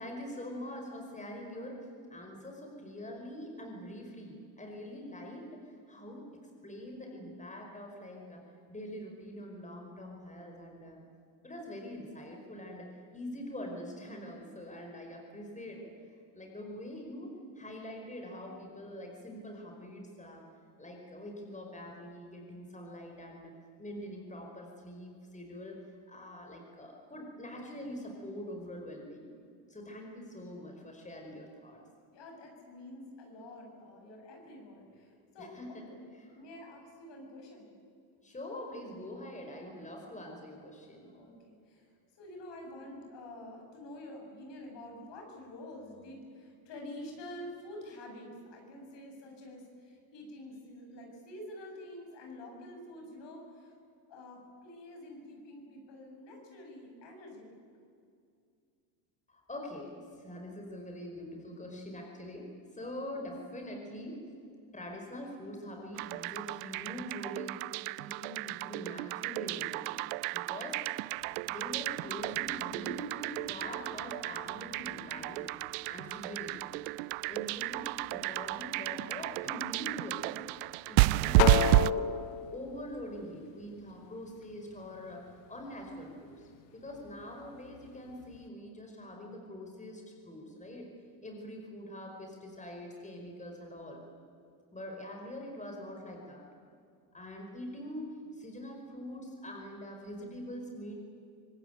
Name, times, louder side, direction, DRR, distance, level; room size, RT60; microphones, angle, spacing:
voice 1, 0.0-6.2 6.6-8.4 8.7-11.0 11.4-15.9 16.3-17.3 17.5-20.4 20.8-23.5 23.8-29.3 29.7-31.8 35.4-35.8 36.2-36.4 38.2-41.2 59.3-64.4 64.7-70.0 70.3-70.8 71.4-75.5 75.9-76.7 77.3-80.3 80.9-82.1 82.5-85.2 85.5-90.9 91.2-94.0 94.7-96.5 97.1-98.0 98.3-100.9, left 1 dB, 15° left, 1 dB, 5.0 m, -44 dB
voice 2, 32.1-36.0 36.3-37.7 41.1-41.9 42.2-53.8 54.1-57.5 62.9-63.0, left 1 dB, 60° left, 1 dB, 7.9 m, -48 dB
sound 1, 66.0-81.9, right 23 dB, 75° right, 0.6 m, -32 dB
sound 2, 71.1-88.5, left 10 dB, 75° left, 1.5 m, -40 dB
25.0 x 19.5 x 9.1 m, 2.4 s
supercardioid pair, 90°, 48 cm